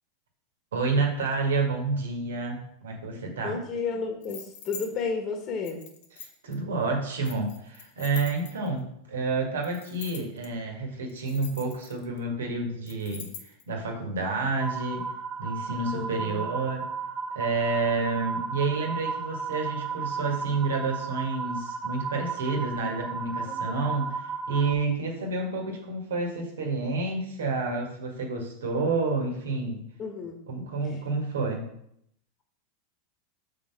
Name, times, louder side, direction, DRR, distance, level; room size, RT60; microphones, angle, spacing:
voice 1, 0.7-3.6 6.2-15.1 15.4-16.9 17.3-29.8 30.5-31.7, right 3 dB, 85° right, 2 dB, 1.6 m, -29 dB
voice 2, 3.4-5.8 15.9-16.5 23.4-24.0 30.0-30.4 30.8-31.0, left 4 dB, 40° left, 3 dB, 1.3 m, -33 dB
sound 1, 4.2-4.9 5.6-6.5 7.2-8.8 9.6-10.5 11.1-12.2 12.9-13.6, left 7 dB, 70° left, 1.1 m, -43 dB
sound 2, 14.6-24.7, right 5 dB, 30° right, 1.5 m, -34 dB
6.1 x 4.1 x 5.7 m, 0.73 s
hypercardioid pair, 100°, 0 cm